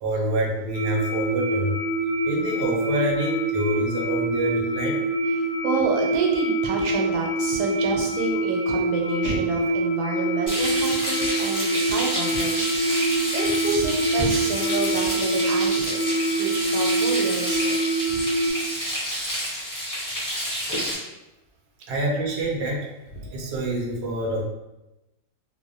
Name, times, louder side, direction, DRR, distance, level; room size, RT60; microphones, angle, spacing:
voice 1, 0.0-1.8 2.2-5.0 20.0-20.1 21.9-22.9 23.1-24.4, right 1 dB, 70° right, -2 dB, 0.6 m, -27 dB
sound 1, 0.7-18.5, right 2 dB, 70° left, 0.9 m, -25 dB
voice 2, 5.3-17.8, right 3 dB, 85° right, 1 dB, 1.1 m, -29 dB
Frying (food), 10.5-20.9, equal, 30° left, 0.3 m, -29 dB
2.5 x 2.0 x 2.6 m, 0.96 s
omnidirectional pair, 1.6 m